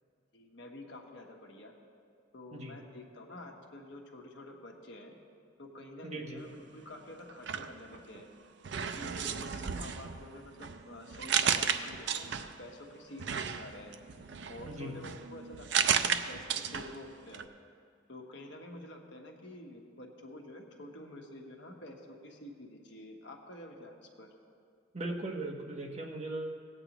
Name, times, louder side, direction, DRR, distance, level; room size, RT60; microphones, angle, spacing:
voice 1, 0.3-1.7 2.3-5.1 5.6-8.3 8.8-13.9 14.5-17.5 18.1-24.3, left 1 dB, 70° left, 1 dB, 1.2 m, -49 dB
voice 2, 6.0-6.4 14.7-15.0 24.9-26.6, right 2 dB, 35° right, 0 dB, 1.0 m, -38 dB
sound 1, 7.3-8.3 8.6-12.7 13.2-17.1 17.3-17.4, right 7 dB, 65° right, 0.5 m, -34 dB
18.5 x 8.8 x 3.0 m, 2.2 s
head